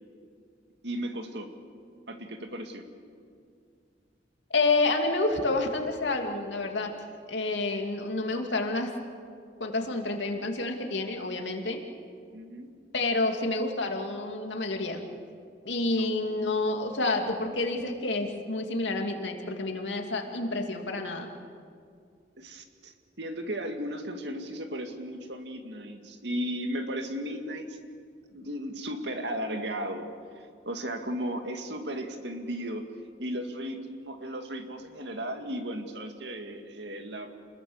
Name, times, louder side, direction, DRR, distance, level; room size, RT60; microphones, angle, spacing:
voice 1, 0.8-1.5 2.1-2.9 12.3-12.7 16.0-16.1 22.4-27.8 28.3-30.1 30.7-32.9 33.2-37.4, equal, 70° right, 6 dB, 2.1 m, -35 dB
voice 2, 4.5-6.9 7.3-8.9 9.6-11.8 12.9-15.0 15.6-21.3, left 2 dB, 80° left, 3 dB, 2.6 m, -29 dB
28.0 x 20.5 x 7.2 m, 2.3 s
head